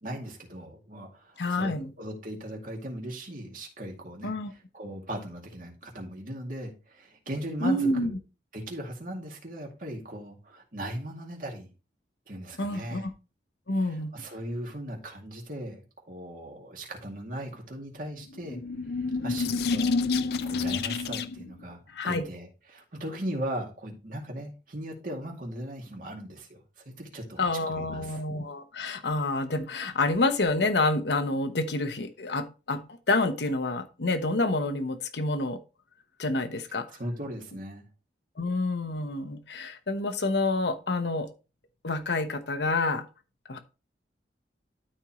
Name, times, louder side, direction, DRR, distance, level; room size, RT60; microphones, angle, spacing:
voice 1, 0.0-8.1 8.5-11.7 12.3-13.1 13.7-15.8 16.1-18.6 19.2-20.0 20.4-21.8 22.0-26.6 26.9-28.2 36.9-37.9, right 1 dB, 50° right, 0 dB, 2.3 m, -38 dB
voice 2, 1.4-1.9 4.2-4.5 7.6-8.2 12.6-13.1 13.7-14.1 21.9-22.3 27.4-32.8 33.1-35.6 36.2-36.9 38.4-41.3 41.8-43.1 43.5-43.6, left 2 dB, 75° left, 9 dB, 1.0 m, -28 dB
sound 1, 18.3-21.5, left 4 dB, 60° left, 0.4 m, -28 dB
12.5 x 4.5 x 3.1 m, 0.31 s
head